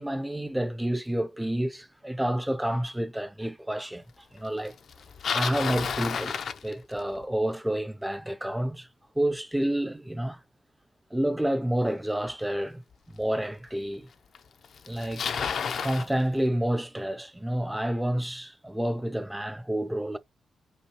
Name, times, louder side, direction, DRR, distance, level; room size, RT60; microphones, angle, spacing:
voice 1, 0.0-4.0 4.3-4.7 5.3-8.9 9.2-10.4 11.1-12.8 13.1-14.1 14.9-15.5 15.8-20.2, right 1 dB, 5° right, 0.6 m, -29 dB
Bicycle, 4.9-7.2 12.3-12.4 13.2-13.3 14.3-14.4 14.6-16.1, left 6 dB, 65° left, 0.6 m, -31 dB
5.4 x 2.2 x 3.3 m
cardioid pair, 105°, 0 cm